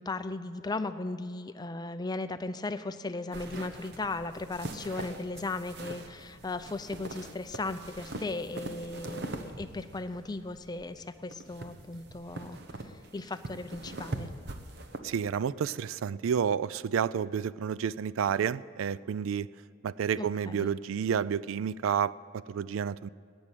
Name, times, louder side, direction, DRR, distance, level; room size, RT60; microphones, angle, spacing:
voice 1, 0.0-12.6 13.1-14.3 20.2-20.7, left 3 dB, 20° left, 11 dB, 0.4 m, -36 dB
sound 1, 3.3-15.0, right 2 dB, 50° right, 1.0 m, -43 dB
voice 2, 15.0-19.5 19.8-23.1, right 7 dB, 75° right, 19 dB, 0.3 m, -30 dB
17.0 x 6.3 x 9.1 m, 2.3 s
head